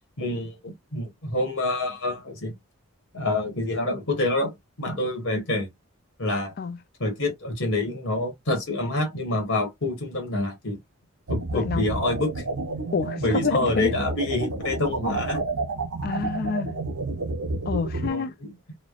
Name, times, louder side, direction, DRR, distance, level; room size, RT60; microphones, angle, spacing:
voice 1, 0.2-2.5 3.1-5.7 6.2-6.5 7.0-10.8 11.3-12.4 13.2-15.4 18.0-18.5, left 2 dB, 60° left, 1.1 m, -27 dB
sound 1, 11.3-18.1, right 3 dB, 80° right, 0.7 m, -30 dB
voice 2, 11.5-11.9 12.9-13.9 16.0-16.8 17.7-18.3, left 5 dB, 45° left, 0.3 m, -28 dB
3.1 x 2.1 x 2.3 m
head